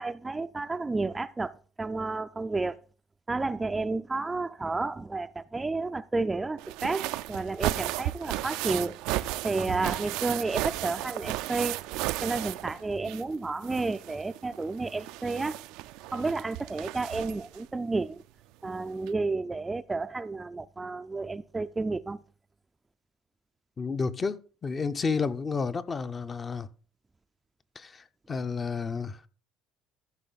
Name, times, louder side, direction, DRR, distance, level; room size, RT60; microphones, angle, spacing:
voice 1, 0.0-2.8 3.3-9.0 9.4-11.8 12.2-15.6 16.1-18.2 18.6-22.2, right 3 dB, 15° right, 0.4 m, -31 dB
sound 1, 6.6-13.3 13.6-17.6 18.6-18.7 19.1-19.2, right 16 dB, 80° right, 0.4 m, -34 dB
voice 2, 23.8-26.7 27.8-29.3, left 4 dB, 30° left, 0.6 m, -31 dB
14.0 x 5.3 x 4.0 m
cardioid pair, 105°, 0 cm